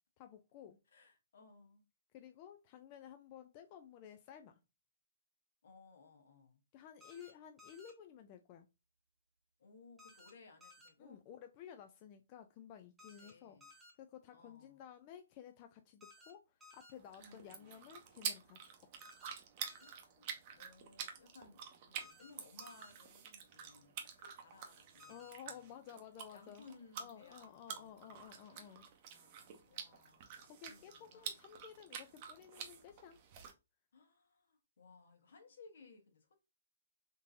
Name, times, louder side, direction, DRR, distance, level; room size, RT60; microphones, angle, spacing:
voice 1, 0.2-0.8 2.1-4.6 6.7-8.7 11.0-18.9 25.1-26.6 27.0-28.9 30.5-33.2, left 9 dB, 30° left, 0.3 m, -54 dB
voice 2, 0.9-1.8 5.6-6.6 9.6-11.2 13.1-13.7 14.3-14.8 17.2-17.7 19.8-21.6 21.9-25.2 25.4-25.7 26.3-28.2 28.5-31.3 33.9-36.3, left 4 dB, 70° left, 1.2 m, -61 dB
sound 1, 7.0-7.3 7.6-7.9 10.0-10.3 10.6-10.9 13.0-13.3 13.6-13.9 16.0-16.3 16.6-16.9 19.0-19.3 19.6-19.9 22.0-22.3 22.6-22.9 25.0-25.3, left 2 dB, 5° right, 1.0 m, -59 dB
sound 2, 16.9-33.5, right 7 dB, 35° right, 0.7 m, -49 dB
3.6 x 2.7 x 2.6 m
hypercardioid pair, 150°, 0 cm